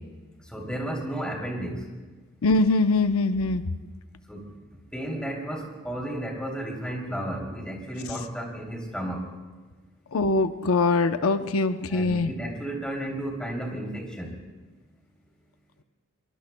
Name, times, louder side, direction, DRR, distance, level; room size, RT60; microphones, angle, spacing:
voice 1, 0.4-1.9 4.3-4.5 4.9-9.3 11.9-14.4, right 1 dB, 5° left, -1 dB, 2.9 m, -33 dB
voice 2, 2.4-3.6 10.1-12.3, left 3 dB, 85° left, 9 dB, 0.6 m, -22 dB
23.5 x 23.0 x 2.2 m, 1.3 s
head